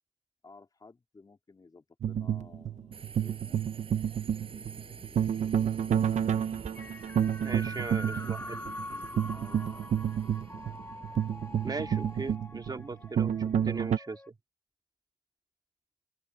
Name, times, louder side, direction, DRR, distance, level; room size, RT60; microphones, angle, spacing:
voice 1, 0.4-3.6 4.4-6.4 8.0-10.8, left 3 dB, 35° left, 3.6 m, -56 dB
sound 1, 2.0-14.0, right 9 dB, 90° right, 1.0 m, -30 dB
Subway metro underground, 2.9-12.4, right 5 dB, 55° right, 6.9 m, -50 dB
sound 2, 6.7-14.3, left 2 dB, 20° left, 1.9 m, -44 dB
voice 2, 7.4-8.6 11.6-14.3, right 3 dB, 35° right, 2.7 m, -39 dB
open air
wide cardioid pair, 100°, 11 cm